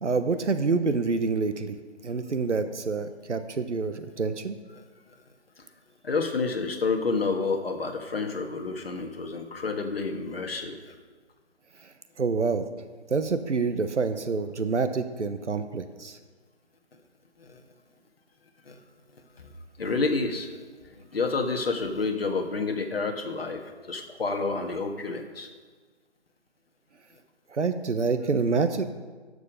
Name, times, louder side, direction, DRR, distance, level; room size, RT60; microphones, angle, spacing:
voice 1, 0.0-1.8 2.0-4.6 12.2-12.7 13.1-16.1 27.5-28.8, right 4 dB, 80° right, 9 dB, 1.0 m, -27 dB
voice 2, 6.0-10.9 18.7-18.8 19.8-20.5 21.1-23.6 23.9-25.5, left 4 dB, 55° left, 4 dB, 1.5 m, -29 dB
12.5 x 6.7 x 5.1 m, 1.5 s
figure-of-eight pair, 155°, 35 cm